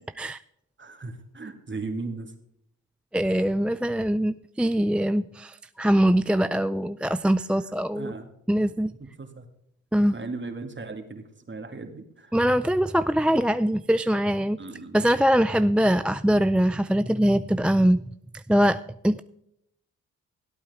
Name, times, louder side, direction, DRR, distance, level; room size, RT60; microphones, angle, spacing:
voice 1, 0.8-2.3 7.9-8.3 9.0-9.5 10.1-12.3 14.6-15.0, right 3 dB, 35° right, 6 dB, 2.2 m, -37 dB
voice 2, 3.1-8.1 8.5-8.9 9.9-10.2 12.3-14.6 14.9-18.1 18.3-19.2, equal, 5° right, 12 dB, 0.4 m, -22 dB
17.0 x 8.7 x 3.6 m, 0.76 s
supercardioid pair, 45°, 34 cm